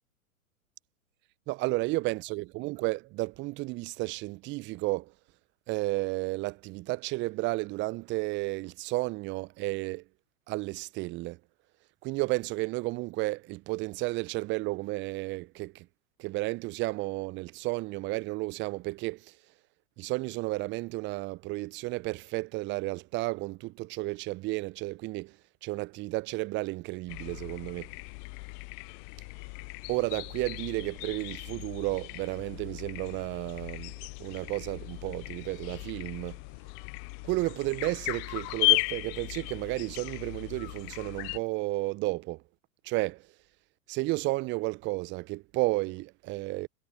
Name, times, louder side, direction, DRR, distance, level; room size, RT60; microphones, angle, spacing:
voice 1, 1.5-5.1 5.7-10.0 10.5-11.4 12.0-15.9 16.2-19.3 20.0-25.3 25.6-27.9 29.9-36.4 37.2-42.4 42.8-43.2 43.9-46.7, right 21 dB, 25° right, 0.8 m, -32 dB
sound 1, 27.1-41.4, left 38 dB, 25° left, 0.5 m, -36 dB
figure-of-eight pair, 100°, 43 cm